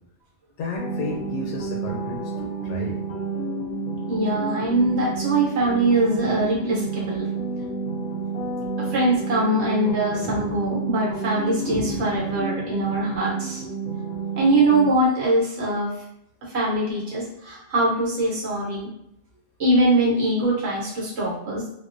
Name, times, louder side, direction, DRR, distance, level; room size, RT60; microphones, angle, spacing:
voice 1, 0.6-3.0, left 3 dB, 80° left, -1 dB, 1.0 m, -32 dB
sound 1, 0.8-14.9, right 4 dB, 55° left, 0.8 m, -30 dB
voice 2, 4.1-7.3 8.8-13.6 14.4-15.9 16.5-18.9 19.6-21.6, right 1 dB, 65° right, -5 dB, 1.2 m, -22 dB
2.6 x 2.1 x 2.5 m, 0.77 s
omnidirectional pair, 1.2 m